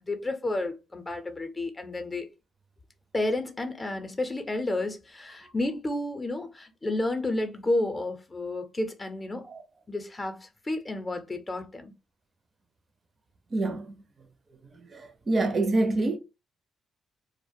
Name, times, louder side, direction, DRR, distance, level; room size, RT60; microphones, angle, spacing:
voice 1, 0.0-2.3 3.1-9.5 9.9-11.9, left 2 dB, 25° left, 0.6 m, -31 dB
voice 2, 13.5-14.0 14.7-16.2, right 2 dB, 40° right, 0.5 m, -27 dB
2.3 x 2.1 x 2.6 m
cardioid pair, 90°, 0 cm